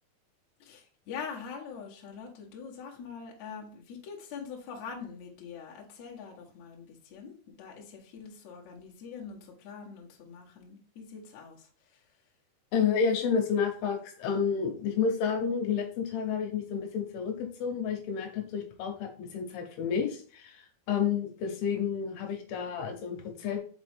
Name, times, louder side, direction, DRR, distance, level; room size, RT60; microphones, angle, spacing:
voice 1, 0.6-12.0, left 6 dB, 60° left, -2 dB, 2.1 m, -44 dB
voice 2, 12.7-23.6, left 6 dB, 80° left, 4 dB, 2.9 m, -30 dB
5.3 x 5.2 x 3.5 m, 0.43 s
omnidirectional pair, 4.6 m